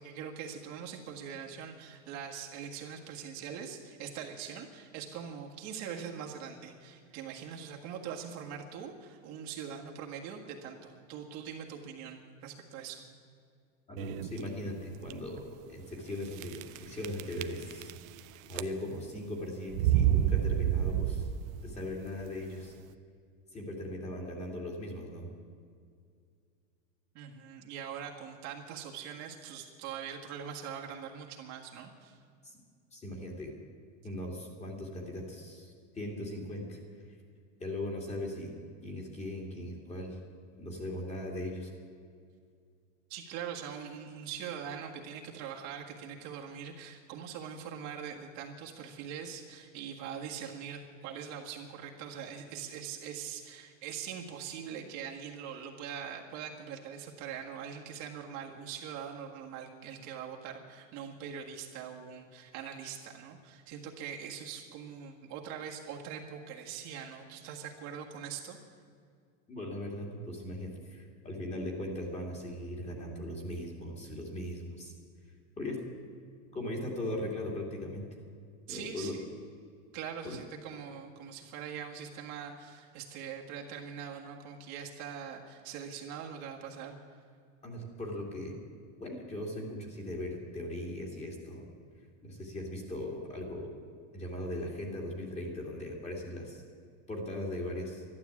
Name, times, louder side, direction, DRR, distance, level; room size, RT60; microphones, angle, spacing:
voice 1, 0.0-13.0 27.1-32.2 43.1-68.6 78.7-79.3 79.9-87.0, right 7 dB, 45° right, 0 dB, 1.7 m, -42 dB
voice 2, 13.9-17.9 18.5-21.3 21.6-22.7 23.5-25.3 32.4-32.6 32.9-33.5 34.0-36.8 37.6-38.5 38.8-40.2 40.6-41.7 69.5-74.9 75.6-75.8 76.5-78.0 78.7-79.2 80.2-80.4 87.6-88.5 89.0-91.7 92.2-93.7 94.1-96.6 97.1-98.0, left 1 dB, 15° left, 0 dB, 2.5 m, -39 dB
sound 1, 14.0-14.4 15.0-15.1 15.4-15.5 16.4-16.8 17.0-18.2 18.5-19.0 19.7-21.7, right 11 dB, 80° right, 0.8 m, -28 dB
12.0 x 12.0 x 8.4 m, 2.2 s
supercardioid pair, 155°, 40 cm